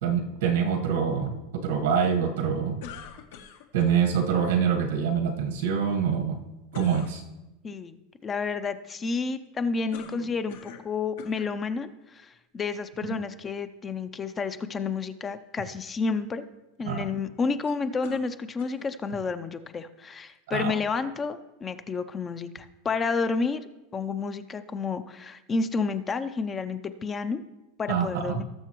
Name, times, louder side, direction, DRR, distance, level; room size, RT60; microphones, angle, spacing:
voice 1, 0.0-2.8 3.7-6.4 6.7-7.2 13.1-13.2 16.9-17.1 20.5-20.7 27.9-28.4, right 7 dB, 85° right, 4 dB, 1.5 m, -25 dB
sound 1, 2.8-4.0 6.7-7.1 9.9-10.9 11.2-11.5 12.3-12.4 18.0-18.9, left 8 dB, 75° left, 1.1 m, -44 dB
voice 2, 7.6-16.4 16.8-23.6 23.9-27.4 27.8-28.4, left 4 dB, 15° left, 11 dB, 0.4 m, -30 dB
18.5 x 6.7 x 3.1 m, 0.99 s
supercardioid pair, 170°, 0 cm